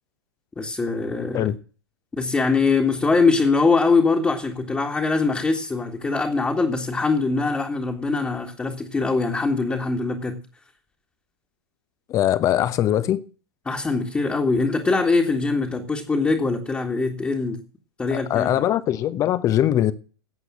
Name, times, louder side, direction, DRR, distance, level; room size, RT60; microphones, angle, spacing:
voice 1, 0.6-1.5 2.1-10.4 13.7-17.6 18.0-18.6, left 4 dB, 10° left, 1.8 m, -22 dB
voice 2, 12.1-13.2 18.1-19.9, left 12 dB, 30° left, 1.0 m, -21 dB
12.5 x 8.1 x 7.4 m
figure-of-eight pair, 105°, 12 cm